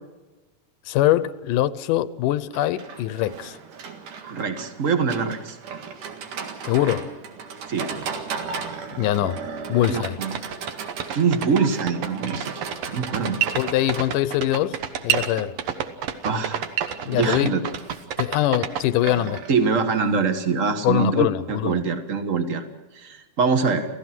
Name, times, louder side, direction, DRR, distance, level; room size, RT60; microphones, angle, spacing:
voice 1, 0.9-3.6 6.6-7.1 9.0-9.4 9.7-10.2 13.5-14.8 15.0-15.6 17.1-17.6 18.2-19.4 20.8-21.8, left 14 dB, 85° left, 2.4 m, -23 dB
Livestock farm animals working animals, 2.5-20.6, right 5 dB, 80° right, 3.4 m, -37 dB
voice 2, 4.3-5.6 7.7-7.9 9.9-10.3 11.1-13.4 16.2-16.7 17.0-17.6 19.5-22.6 22.9-23.9, right 5 dB, 35° right, 1.3 m, -24 dB
sound 1, 9.6-9.7 9.8-18.8, right 9 dB, 60° right, 2.0 m, -28 dB
28.5 x 16.0 x 6.0 m
omnidirectional pair, 3.6 m